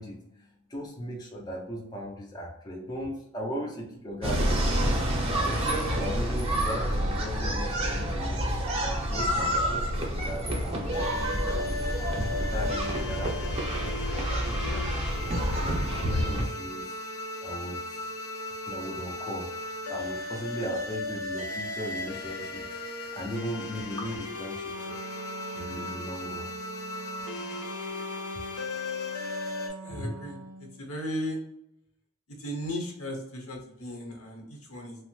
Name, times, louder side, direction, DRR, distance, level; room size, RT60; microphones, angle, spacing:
voice 1, 0.0-4.6 5.5-12.0 12.4-14.9 15.1-18.1 18.7-25.0 25.5-26.5, equal, 20° left, -2 dB, 0.4 m, -38 dB
sound 1, 4.2-16.4, equal, 25° right, 0.6 m, -28 dB
sound 2, 10.9-29.7, left 2 dB, 85° left, 0.6 m, -36 dB
Wind instrument woodwind instrument, 24.7-30.8, right 3 dB, 70° right, 0.5 m, -44 dB
voice 2, 29.8-30.4 30.8-31.4 32.4-35.0, equal, 70° left, 0 dB, 0.9 m, -35 dB
3.0 x 2.0 x 3.0 m, 0.82 s
head